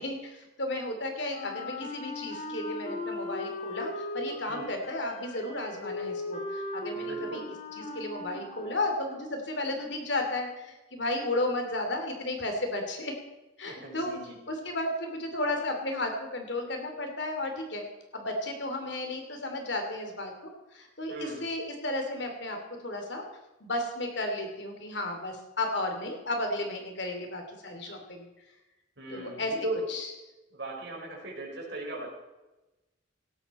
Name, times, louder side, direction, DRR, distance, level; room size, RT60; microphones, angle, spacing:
voice 1, 0.0-7.4 7.7-13.1 13.6-14.1 14.5-17.8 18.1-22.6 22.8-23.2 23.6-28.3 29.1-29.5 29.9-30.1, left 2 dB, 55° left, 4 dB, 3.0 m, -33 dB
Wind instrument woodwind instrument, 1.3-9.6, left 2 dB, 40° left, 2.5 m, -38 dB
voice 2, 7.0-7.4 13.7-14.4 21.1-21.4 29.0-29.9 30.5-32.1, right 1 dB, 60° right, -2 dB, 4.7 m, -37 dB
17.5 x 13.0 x 4.3 m, 1.0 s
head